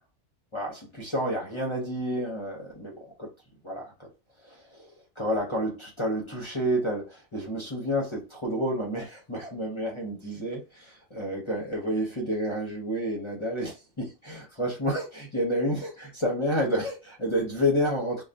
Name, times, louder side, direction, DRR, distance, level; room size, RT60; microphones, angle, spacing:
voice 1, 0.5-3.3 3.6-4.1 4.4-18.2, equal, 30° left, 0.8 m, -30 dB
2.5 x 2.3 x 3.3 m
omnidirectional pair, 1.2 m